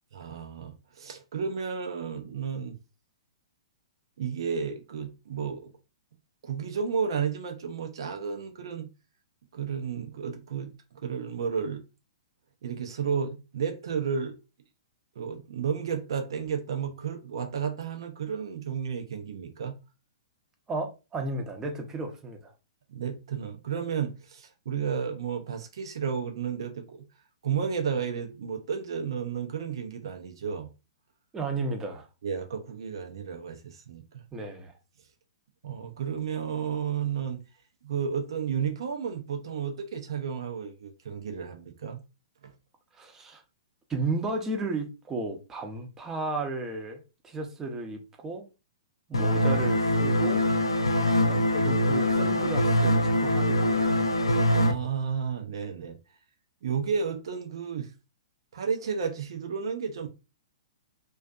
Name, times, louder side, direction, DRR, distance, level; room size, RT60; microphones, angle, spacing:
voice 1, 0.1-2.8 4.2-5.7 6.4-8.9 9.5-10.7 11.0-11.8 12.6-14.4 15.2-19.8 22.9-27.1 27.4-30.7 32.2-34.2 35.6-37.4 37.8-42.0 42.4-42.5 54.5-56.0 56.6-57.9 58.5-60.1, right 6 dB, 65° right, 0.5 m, -32 dB
voice 2, 20.7-22.5 31.3-32.1 34.3-34.7 43.0-43.4 43.9-48.5 49.1-50.4 51.3-54.0, right 2 dB, 15° right, 0.6 m, -34 dB
sound 1, 49.1-54.7, left 1 dB, 90° left, 0.4 m, -23 dB
2.5 x 2.3 x 2.3 m
hypercardioid pair, 115°, 3 cm